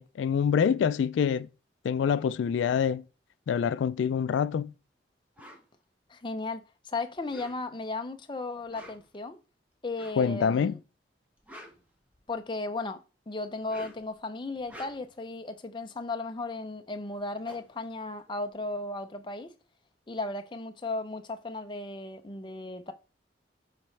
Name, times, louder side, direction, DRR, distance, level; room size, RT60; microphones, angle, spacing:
voice 1, 0.0-1.5 1.8-3.0 3.5-4.7 10.2-10.7, left 7 dB, 85° left, 0.3 m, -26 dB
sound 1, 5.4-5.6 7.2-7.9 8.6-9.2 9.9-10.3 11.2-12.5 13.5-14.1 14.5-15.2 16.8-16.9 17.1-18.8, equal, 10° right, 1.1 m, -50 dB
voice 2, 6.1-9.4 9.8-10.8 12.3-13.0 13.3-19.5 20.1-22.9, left 2 dB, 25° left, 0.5 m, -35 dB
12.0 x 4.2 x 3.2 m
head